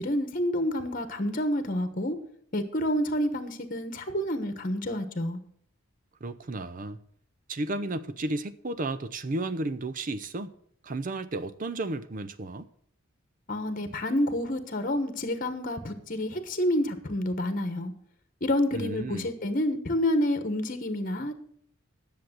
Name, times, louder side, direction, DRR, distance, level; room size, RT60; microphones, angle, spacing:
voice 1, 0.0-2.2 2.5-5.4 13.5-17.9 18.4-21.3, left 1 dB, 40° left, 1.2 m, -28 dB
voice 2, 6.2-7.0 7.5-10.5 10.8-12.7 18.7-19.3, right 2 dB, 40° right, 0.6 m, -33 dB
10.5 x 6.8 x 7.8 m
head